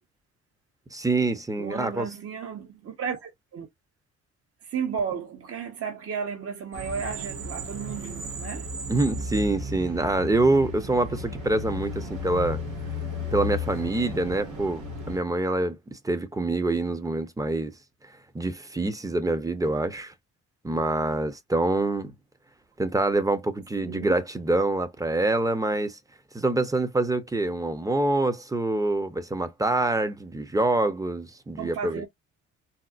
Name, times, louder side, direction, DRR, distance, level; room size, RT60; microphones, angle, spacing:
voice 1, 0.9-2.1 8.9-12.6 13.3-17.7 18.3-20.1 20.6-22.1 22.8-26.0 26.3-32.0, right 2 dB, 10° right, 0.7 m, -26 dB
voice 2, 1.6-3.7 4.6-8.7 23.8-24.2 31.5-32.1, right 6 dB, 50° right, 0.9 m, -33 dB
sound 1, 6.7-15.2, left 2 dB, 80° right, 1.8 m, -34 dB
4.2 x 2.0 x 2.4 m
cardioid pair, 90°, 30 cm